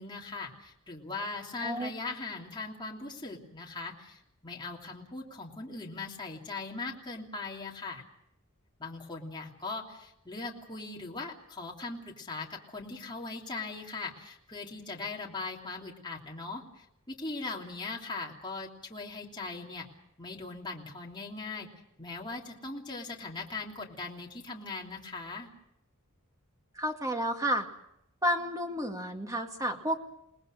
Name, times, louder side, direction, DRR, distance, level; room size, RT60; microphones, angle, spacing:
voice 1, 0.0-8.0 8.8-19.9 20.2-21.7 22.0-25.5, left 3 dB, 20° left, -2 dB, 3.1 m, -40 dB
voice 2, 1.6-1.9 26.8-27.7 28.2-30.0, equal, 15° right, 4 dB, 2.1 m, -31 dB
28.5 x 19.5 x 6.5 m, 0.79 s
head